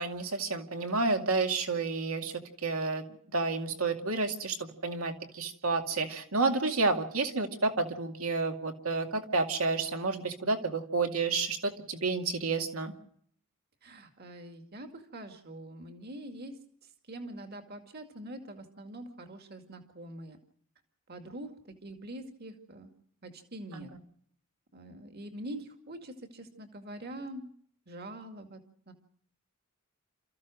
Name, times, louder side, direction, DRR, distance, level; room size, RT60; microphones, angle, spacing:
voice 1, 0.0-12.9 23.7-23.9, right 3 dB, 85° right, 5 dB, 2.3 m, -30 dB
voice 2, 13.8-20.4 21.1-22.9 23.2-23.9 24.7-27.5 27.9-28.6 28.9-29.0, right 1 dB, 50° right, 6 dB, 2.2 m, -44 dB
29.0 x 14.5 x 6.3 m, 0.66 s
head